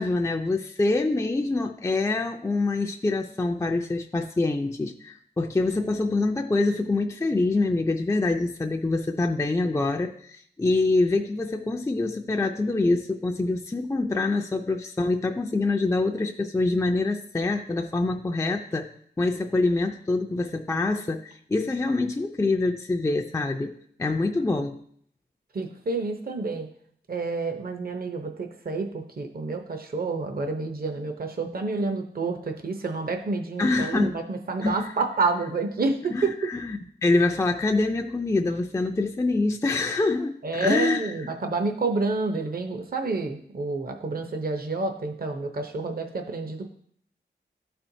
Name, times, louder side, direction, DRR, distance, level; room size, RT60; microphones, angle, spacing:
voice 1, 0.0-18.9 19.2-23.7 24.0-24.8 33.6-34.1 34.6-34.8 36.1-41.1, left 2 dB, 15° left, 4 dB, 0.4 m, -25 dB
voice 2, 25.5-26.7 27.1-36.5 40.4-46.7, right 3 dB, 55° right, 4 dB, 0.7 m, -29 dB
12.0 x 4.3 x 2.7 m, 0.64 s
wide cardioid pair, 90°, 18 cm